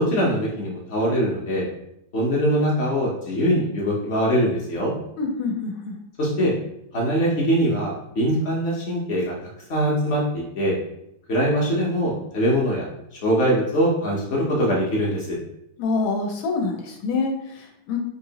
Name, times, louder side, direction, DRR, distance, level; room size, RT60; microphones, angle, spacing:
voice 1, 0.0-1.7 2.1-4.9 6.2-6.5 6.9-9.3 9.7-10.8 11.3-12.9 13.2-15.4, equal, 65° left, -4 dB, 0.6 m, -22 dB
voice 2, 5.2-6.0 15.8-18.0, left 4 dB, 85° left, 1 dB, 1.4 m, -26 dB
4.2 x 2.8 x 2.8 m, 0.79 s
omnidirectional pair, 2.2 m